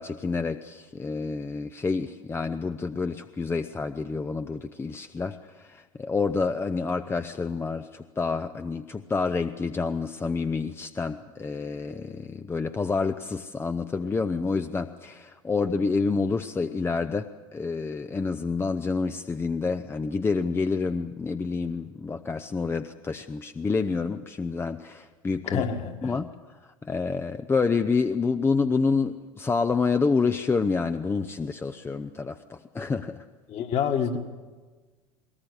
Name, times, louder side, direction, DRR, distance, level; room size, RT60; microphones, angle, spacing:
voice 1, 0.0-25.6 26.0-33.3, left 4 dB, 15° left, 9 dB, 0.6 m, -28 dB
voice 2, 25.5-26.0 33.5-34.2, left 7 dB, 40° left, 5 dB, 1.9 m, -27 dB
22.0 x 19.0 x 8.2 m, 1.4 s
figure-of-eight pair, 75°, 17 cm